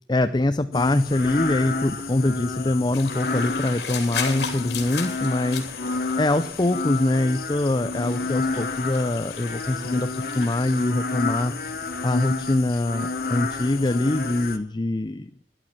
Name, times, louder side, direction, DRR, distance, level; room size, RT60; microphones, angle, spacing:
voice 1, 0.1-11.5 12.0-15.4, left 2 dB, 25° left, 10 dB, 0.5 m, -24 dB
sound 1, 0.7-14.6, left 3 dB, 55° left, 1.4 m, -30 dB
sound 2, 2.9-10.8, left 6 dB, 75° left, 3.2 m, -36 dB
13.5 x 11.0 x 5.9 m, 0.67 s
head